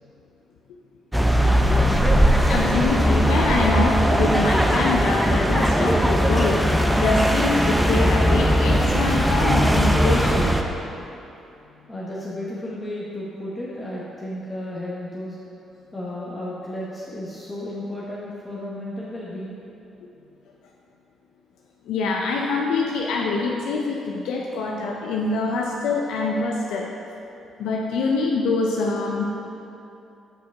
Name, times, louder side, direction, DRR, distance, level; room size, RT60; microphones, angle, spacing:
sound 1, 1.1-10.6, equal, 5° right, 0.5 m, -19 dB
voice 1, 2.5-10.5 21.9-26.9 27.6-29.2, left 3 dB, 85° left, -1 dB, 0.5 m, -25 dB
voice 2, 11.9-15.4 15.9-19.6, left 1 dB, 15° left, -7 dB, 1.0 m, -33 dB
6.9 x 4.7 x 4.6 m, 2.9 s
cardioid pair, 90°, 0 cm